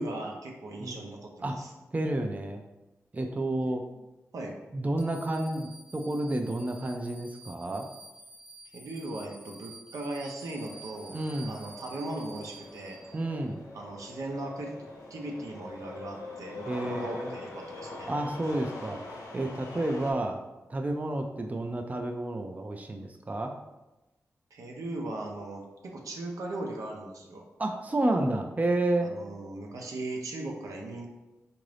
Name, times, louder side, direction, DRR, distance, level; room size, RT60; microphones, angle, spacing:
voice 1, 0.0-1.7 4.3-4.6 8.7-11.2 11.5-13.0 13.7-14.8 15.1-18.1 24.5-27.5 29.0-31.1, right 2 dB, 80° right, 0 dB, 0.6 m, -38 dB
voice 2, 1.9-2.6 3.1-3.8 4.7-7.9 11.1-11.6 13.1-13.6 16.7-17.3 18.1-20.4 20.7-23.5 27.6-29.1, right 1 dB, 25° right, 4 dB, 0.4 m, -30 dB
sound 1, 5.0-13.4, right 2 dB, 40° left, 0.7 m, -50 dB
sound 2, 10.5-20.1, left 2 dB, 80° left, 0.6 m, -43 dB
3.8 x 2.5 x 3.2 m, 1.0 s
cardioid pair, 50°, 6 cm